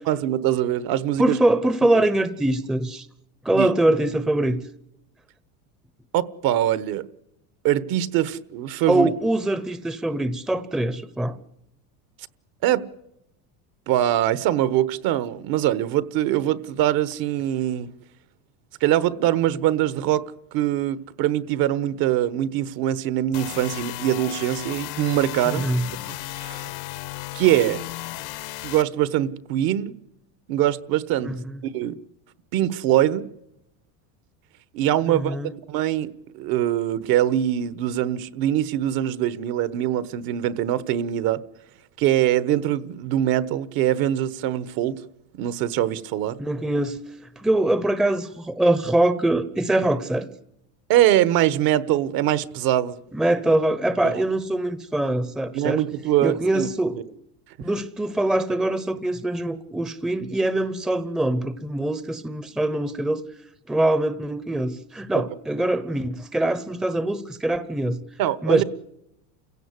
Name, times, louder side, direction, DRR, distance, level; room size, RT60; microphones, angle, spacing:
voice 1, 0.1-1.4 1.9-2.0 3.5-3.7 6.1-7.0 7.6-9.1 12.6-12.9 13.9-17.9 18.8-25.7 26.4-26.7 27.3-27.8 28.6-29.9 30.5-31.4 31.7-32.0 32.5-33.3 34.7-41.4 42.0-45.0 45.3-46.4 50.9-53.0 54.0-54.2 55.5-56.7 65.1-65.2 68.2-68.6, right 12 dB, 55° right, 1.3 m, -23 dB
voice 2, 1.2-3.1 3.4-4.6 8.9-11.4 25.4-25.9 31.2-31.6 35.1-35.5 46.4-47.0 47.4-50.3 53.1-55.8 56.2-57.0 57.6-63.2 63.7-68.0 68.4-68.6, right 1 dB, ahead, 0.8 m, -23 dB
sound 1, 23.3-28.8, left 17 dB, 65° left, 1.2 m, -34 dB
29.0 x 16.5 x 8.2 m
supercardioid pair, 135°, 43 cm